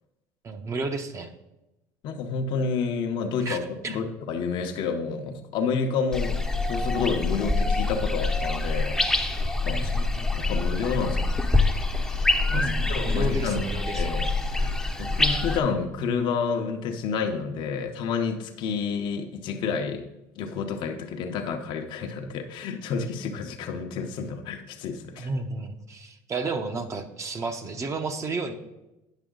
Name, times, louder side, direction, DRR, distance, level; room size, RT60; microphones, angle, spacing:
voice 1, 0.4-1.3 3.4-3.6 3.8-4.0 9.7-10.3 12.5-14.1 25.2-28.5, right 3 dB, 35° right, 6 dB, 0.8 m, -32 dB
voice 2, 2.0-6.4 6.7-9.9 10.3-11.4 11.9-13.7 13.9-14.2 14.5-14.7 15.0-20.1 20.4-25.3, left 5 dB, 60° left, 4 dB, 0.8 m, -30 dB
sound 1, 6.1-15.6, left 3 dB, 5° left, 0.7 m, -25 dB
9.1 x 6.0 x 3.8 m, 0.96 s
supercardioid pair, 90°, 9 cm